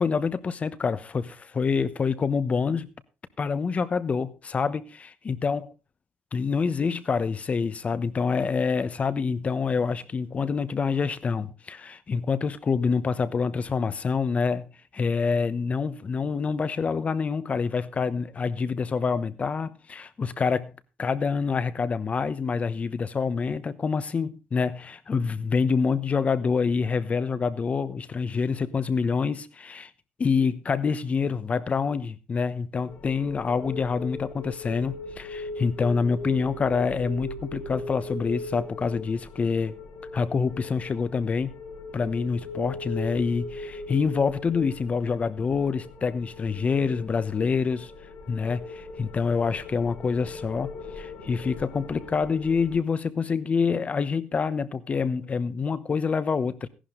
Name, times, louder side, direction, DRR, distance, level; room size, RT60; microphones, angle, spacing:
voice 1, 0.0-2.9 3.4-5.6 6.3-29.9 30.2-39.7 40.1-41.5 41.9-47.9 48.3-56.7, left 5 dB, 40° left, 1.1 m, -26 dB
sound 1, 32.9-52.8, left 2 dB, 80° left, 5.0 m, -39 dB
14.5 x 11.5 x 3.8 m
cardioid pair, 90°, 4 cm